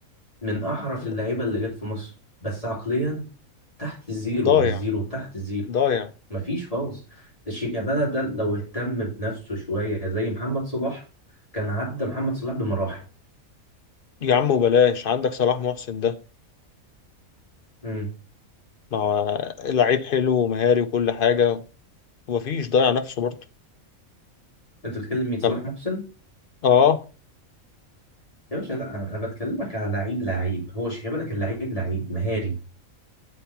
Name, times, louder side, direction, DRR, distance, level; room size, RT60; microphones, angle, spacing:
voice 1, 0.4-2.1 2.4-3.2 3.8-5.7 6.3-11.0 11.5-13.0 17.8-18.1 24.8-26.0 28.5-32.5, equal, 25° left, 2.8 m, -28 dB
voice 2, 4.4-4.8 5.7-6.1 14.2-16.2 18.9-21.6 22.3-23.4 25.4-25.6 26.6-27.0, left 7 dB, 60° left, 0.6 m, -21 dB
8.4 x 4.2 x 5.6 m
omnidirectional pair, 1.4 m